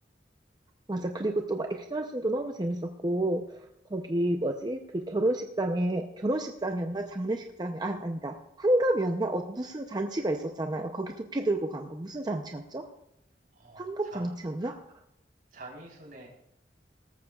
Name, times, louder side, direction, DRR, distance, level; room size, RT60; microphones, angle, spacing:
voice 1, 0.9-3.6 3.9-12.8 13.8-14.8, right 1 dB, 25° right, 4 dB, 0.6 m, -30 dB
voice 2, 13.5-14.3 15.5-16.3, right 2 dB, 50° right, -1 dB, 4.0 m, -46 dB
18.5 x 14.0 x 2.4 m, 0.78 s
head